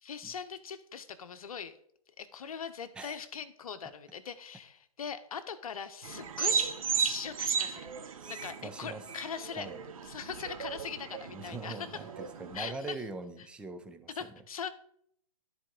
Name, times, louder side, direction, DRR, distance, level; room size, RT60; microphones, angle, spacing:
voice 1, 0.0-1.8 2.2-9.7 10.0-12.0 12.5-13.0 14.1-14.7, left 7 dB, 65° left, 10 dB, 1.0 m, -41 dB
sound 1, 6.0-12.7, right 6 dB, 60° right, 1.0 m, -35 dB
voice 2, 8.2-9.0 9.6-9.8 11.3-14.1, right 3 dB, 5° right, 8 dB, 0.5 m, -42 dB
13.0 x 4.3 x 3.7 m, 0.67 s
hypercardioid pair, 135°, 20 cm